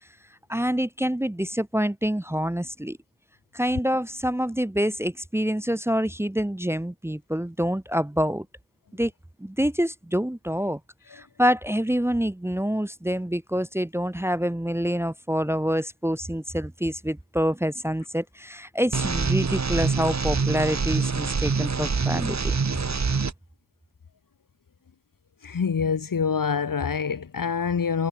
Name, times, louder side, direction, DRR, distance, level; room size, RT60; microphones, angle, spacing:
voice 1, 0.5-3.0 3.5-8.5 8.9-9.1 9.4-10.8 11.1-22.6, equal, 10° right, 0.7 m, -26 dB
sound 1, 18.9-23.3, right 5 dB, 55° right, 1.7 m, -25 dB
voice 2, 25.4-28.1, left 6 dB, 80° left, 1.5 m, -26 dB
wide cardioid pair, 90°, 33 cm